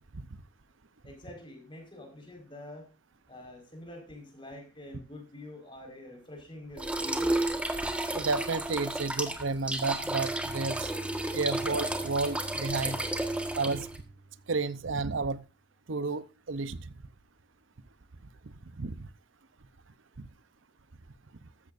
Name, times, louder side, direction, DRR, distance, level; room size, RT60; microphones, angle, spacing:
voice 1, 1.0-2.9 3.3-7.4, left 1 dB, 25° left, 4.8 m, -46 dB
sound 1, 6.8-14.0, right 1 dB, 5° right, 1.5 m, -32 dB
voice 2, 8.1-10.9 11.3-13.0 13.5-13.9 14.5-15.4 15.9-16.9 18.8-19.1 20.2-20.3, right 3 dB, 85° right, 0.8 m, -31 dB
Bowed string instrument, 9.9-15.2, right 2 dB, 45° right, 5.0 m, -47 dB
14.5 x 13.5 x 2.6 m
head